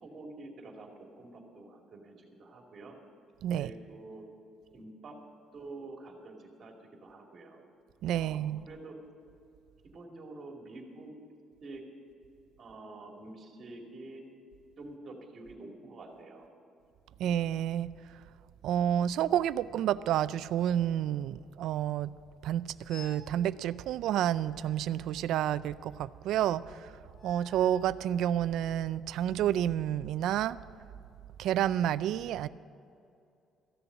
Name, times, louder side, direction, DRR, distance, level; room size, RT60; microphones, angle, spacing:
voice 1, 0.0-3.0 3.5-4.2 4.7-5.2 5.5-7.6 8.2-9.0 9.9-11.1 11.6-11.8 12.6-14.2 14.8-16.5, right 2 dB, 40° right, 1 dB, 2.5 m, -47 dB
voice 2, 8.0-8.6 17.2-17.9 18.6-22.1 22.4-26.9 27.2-30.6 31.4-32.5, right 11 dB, 70° right, 16 dB, 0.4 m, -30 dB
sound 1, 22.9-23.4 24.5-25.8 27.1-28.0, left 4 dB, 30° left, 1.7 m, -53 dB
14.5 x 6.9 x 9.6 m, 2.5 s
cardioid pair, 135°, 0 cm